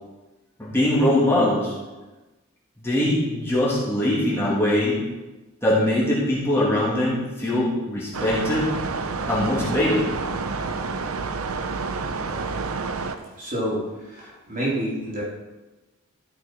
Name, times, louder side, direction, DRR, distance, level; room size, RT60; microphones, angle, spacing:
voice 1, 0.6-1.7 2.8-5.0 5.6-8.7 9.3-10.1, left 1 dB, 10° left, -8 dB, 2.8 m, -22 dB
sound 1, 8.1-13.2, right 4 dB, 75° right, 0.7 m, -29 dB
voice 2, 13.3-15.2, right 1 dB, 40° right, -6 dB, 3.2 m, -29 dB
13.5 x 6.3 x 4.6 m, 1.1 s
head